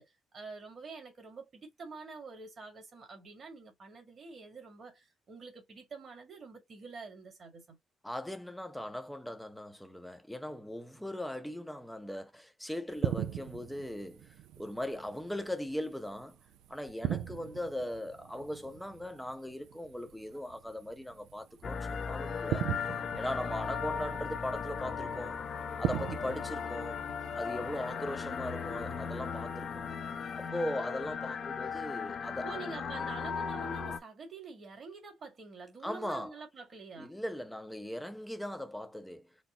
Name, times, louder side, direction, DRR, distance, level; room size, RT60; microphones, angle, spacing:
voice 1, 0.0-7.8 27.9-28.4 32.4-37.1, right 4 dB, 45° right, 1.8 m, -47 dB
voice 2, 8.0-16.4 16.7-25.4 25.8-27.0 27.3-29.9 30.4-32.8 35.8-36.3 37.0-39.3, left 1 dB, 5° left, 0.6 m, -39 dB
sound 1, 12.9-30.5, right 11 dB, 90° right, 0.4 m, -41 dB
sound 2, 21.6-34.0, left 6 dB, 50° left, 0.6 m, -37 dB
4.2 x 2.0 x 3.8 m
cardioid pair, 90°, 0 cm